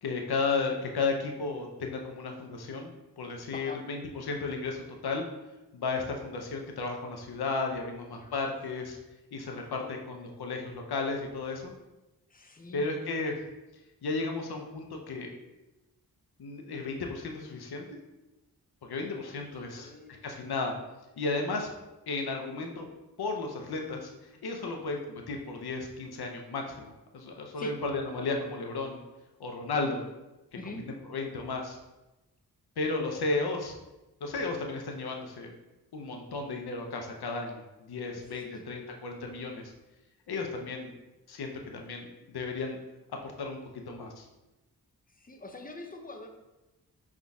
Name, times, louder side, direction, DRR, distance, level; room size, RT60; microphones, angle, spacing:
voice 1, 0.0-2.9 3.2-5.3 5.7-9.0 9.3-11.7 12.7-13.3 14.0-15.3 16.4-18.0 18.8-19.9 20.2-20.7 21.2-21.7 22.1-22.9 23.2-24.1 24.4-29.0 29.4-30.0 30.9-31.8 32.8-33.7 34.2-35.5 35.9-39.7 40.3-40.9 41.3-42.8 43.2-43.6 43.9-44.3, left 3 dB, 80° left, 2 dB, 0.7 m, -34 dB
voice 2, 3.5-3.8 8.1-8.5 9.5-9.9 12.3-12.9 19.3-20.2 24.7-24.8 27.6-27.8 30.5-30.9 38.1-38.7 45.1-46.3, left 2 dB, 25° left, 3 dB, 0.6 m, -45 dB
5.2 x 3.7 x 2.3 m, 1.0 s
cardioid pair, 55°, 38 cm